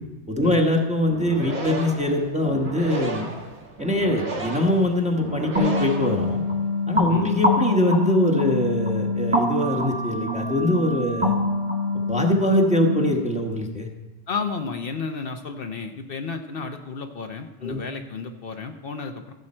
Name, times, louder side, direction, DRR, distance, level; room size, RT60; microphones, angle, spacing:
voice 1, 0.3-3.3 3.8-6.4 6.9-11.4 12.1-13.9 17.6-17.8, left 1 dB, 5° right, 1 dB, 1.1 m, -23 dB
sound 1, 1.1-6.7, right 2 dB, 75° right, 1.9 m, -34 dB
sound 2, 5.6-13.1, left 2 dB, 25° right, 1.2 m, -25 dB
voice 2, 14.3-19.3, left 5 dB, 60° left, 5 dB, 0.9 m, -32 dB
15.5 x 7.4 x 4.3 m, 1.1 s
omnidirectional pair, 1.1 m